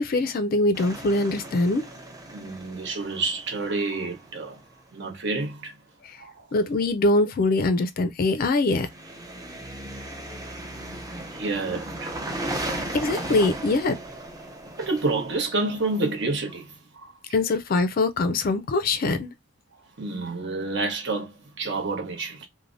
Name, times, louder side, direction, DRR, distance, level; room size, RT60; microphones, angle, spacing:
voice 1, 0.0-1.8 6.0-6.1 6.5-8.9 12.9-14.0 17.3-19.3, left 2 dB, 45° left, 0.4 m, -23 dB
sound 1, 0.7-4.6 8.7-16.4, right 1 dB, 15° right, 0.6 m, -36 dB
voice 2, 2.3-4.6 4.9-5.8 6.2-6.5 11.3-12.1 14.8-17.1 20.0-22.5, right 3 dB, 60° right, 0.9 m, -29 dB
3.2 x 2.1 x 2.5 m
head